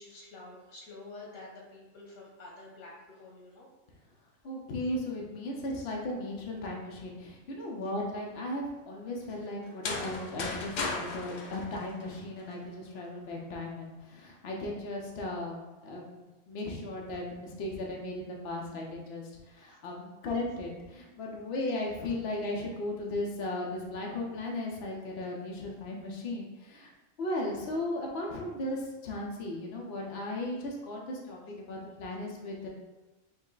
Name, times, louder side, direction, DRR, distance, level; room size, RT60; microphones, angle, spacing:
voice 1, 0.0-3.7, left 2 dB, 90° left, -3 dB, 1.6 m, -48 dB
voice 2, 4.4-26.9 27.2-32.7, left 1 dB, 55° left, -1 dB, 0.9 m, -36 dB
sound 1, 9.7-12.5, left 3 dB, 70° left, 0.4 m, -36 dB
5.2 x 2.1 x 3.9 m, 1.1 s
omnidirectional pair, 1.4 m